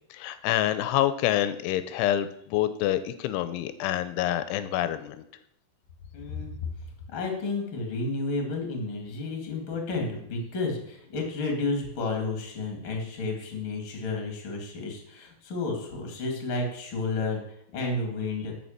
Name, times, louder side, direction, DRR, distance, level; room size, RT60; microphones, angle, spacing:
voice 1, 0.1-5.2, left 12 dB, 85° left, 12 dB, 3.0 m, -27 dB
voice 2, 6.1-6.5 7.1-17.4 17.7-18.5, left 3 dB, 40° left, 2 dB, 2.0 m, -31 dB
9.5 x 5.8 x 7.3 m, 0.74 s
omnidirectional pair, 5.6 m